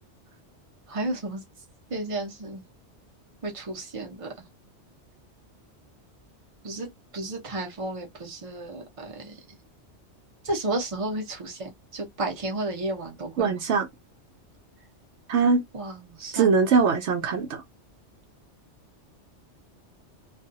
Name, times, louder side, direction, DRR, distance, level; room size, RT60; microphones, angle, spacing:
voice 1, 0.9-1.4 1.9-2.6 3.4-4.3 6.6-6.9 7.1-9.4 10.4-13.6 15.7-16.5, right 2 dB, 30° right, 0.9 m, -32 dB
voice 2, 13.4-13.9 15.3-15.6 16.3-17.6, right 5 dB, 75° right, 0.9 m, -21 dB
2.5 x 2.3 x 2.6 m
omnidirectional pair, 1.2 m